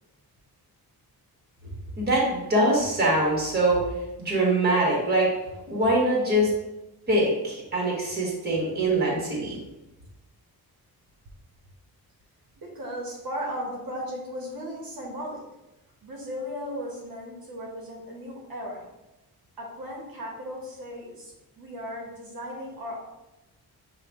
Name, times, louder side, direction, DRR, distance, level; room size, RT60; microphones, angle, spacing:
voice 1, 2.0-3.8 4.2-5.3 5.7-6.5 7.1-9.6, right 1 dB, 25° right, -3 dB, 1.2 m, -23 dB
voice 2, 12.6-15.4 16.0-18.8 19.6-23.0, equal, 60° right, -2 dB, 1.0 m, -36 dB
6.6 x 2.3 x 3.4 m, 0.97 s
wide cardioid pair, 180°, 39 cm